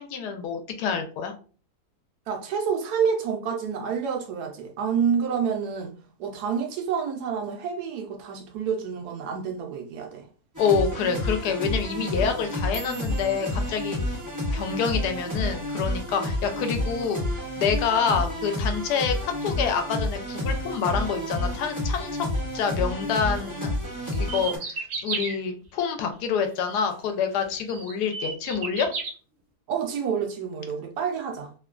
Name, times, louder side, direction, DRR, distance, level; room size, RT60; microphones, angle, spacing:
voice 1, 0.0-1.3 10.6-14.0 14.5-17.2 17.6-22.3 22.5-23.7 24.1-28.9, left 6 dB, 90° left, 1.1 m, -27 dB
voice 2, 2.3-5.9 6.2-10.3 29.7-31.5, right 7 dB, 85° right, 1.2 m, -28 dB
sound 1, 10.5-24.6, left 1 dB, 15° right, 0.7 m, -30 dB
sound 2, 12.3-16.7 17.0-17.4 17.8-18.2 18.6-18.8 19.4-19.8 20.2-21.0 21.4-21.8 22.6-22.7, right 5 dB, 35° left, 0.6 m, -47 dB
sound 3, 24.1-25.4 27.0-27.1 27.7-29.1, right 4 dB, 65° right, 1.0 m, -32 dB
3.1 x 2.2 x 2.4 m
omnidirectional pair, 1.7 m